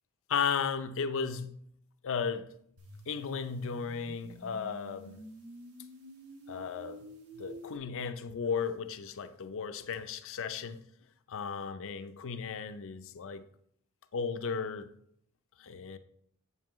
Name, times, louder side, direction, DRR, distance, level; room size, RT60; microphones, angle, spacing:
voice 1, 0.3-1.6 2.0-2.5 3.1-5.2 6.5-7.1 7.4-10.8 11.3-13.4 14.1-14.9 15.6-16.0, left 6 dB, 60° left, 0.5 m, -35 dB
sound 1, 2.8-7.8, right 1 dB, 80° right, 1.4 m, -49 dB
8.1 x 7.2 x 3.1 m
head